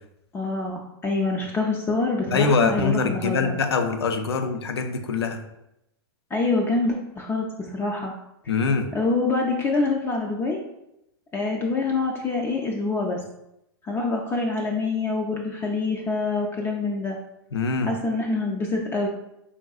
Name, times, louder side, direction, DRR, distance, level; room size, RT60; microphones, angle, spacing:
voice 1, 0.3-3.5 6.3-8.1 8.9-10.6 11.3-13.2 13.8-17.2 17.8-19.1, left 3 dB, 20° left, 0 dB, 0.3 m, -26 dB
voice 2, 2.3-5.4 8.5-8.9 17.5-17.9, left 4 dB, 85° left, 7 dB, 0.4 m, -23 dB
3.7 x 2.2 x 2.3 m, 0.85 s
hypercardioid pair, 110°, 13 cm